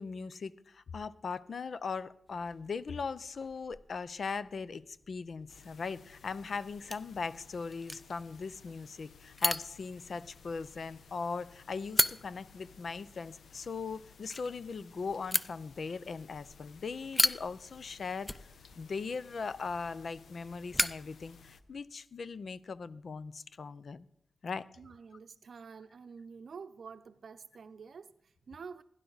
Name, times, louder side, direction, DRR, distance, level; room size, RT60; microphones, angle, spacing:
voice 1, 0.0-18.4 18.8-24.1 24.4-24.6, left 5 dB, 65° left, 0.5 m, -39 dB
sound 1, 2.3-21.9, left 1 dB, 10° left, 0.5 m, -39 dB
sound 2, 5.5-21.6, left 6 dB, 90° left, 0.8 m, -58 dB
voice 2, 24.8-28.8, right 5 dB, 70° right, 0.6 m, -48 dB
17.0 x 10.5 x 4.0 m
wide cardioid pair, 100°, 0 cm